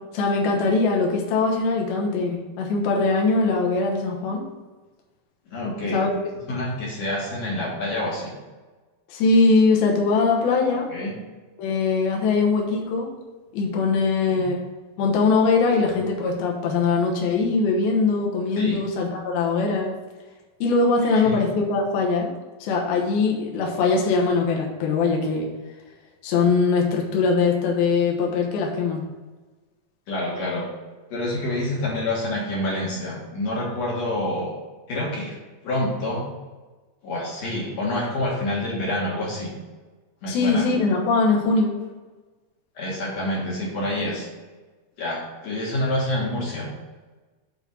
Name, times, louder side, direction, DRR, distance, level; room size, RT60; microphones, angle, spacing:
voice 1, 0.0-4.5 5.9-6.1 9.1-10.9 11.6-13.1 13.5-14.6 15.0-20.0 20.6-22.3 22.6-25.5 26.2-29.0 40.3-41.7, left 4 dB, 70° left, 0 dB, 2.9 m, -21 dB
voice 2, 5.5-6.1 6.5-8.3 10.6-11.2 14.2-14.4 18.6-18.8 21.1-21.4 30.1-30.7 31.1-34.5 34.9-35.4 35.6-36.3 37.0-39.5 40.2-40.7 42.8-44.3 45.0-46.7, left 1 dB, 55° left, -3 dB, 2.2 m, -27 dB
8.0 x 4.4 x 6.1 m, 1.3 s
omnidirectional pair, 4.7 m